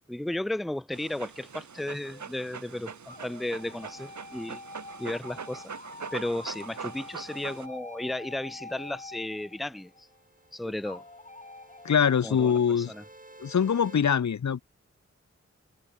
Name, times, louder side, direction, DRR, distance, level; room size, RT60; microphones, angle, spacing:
voice 1, 0.1-4.6 5.0-5.7 6.1-10.1 10.5-11.0 12.2-13.0, left 1 dB, ahead, 0.5 m, -34 dB
Dog, 0.9-7.7, right 6 dB, 75° right, 1.0 m, -42 dB
sound 1, 2.1-2.6 3.1-10.2 10.8-12.6, left 2 dB, 25° left, 1.2 m, -46 dB
sound 2, 9.0-14.0, right 2 dB, 30° right, 5.1 m, -53 dB
voice 2, 11.8-12.9 13.4-14.6, left 7 dB, 75° left, 0.7 m, -23 dB
wide cardioid pair, 80°, 29 cm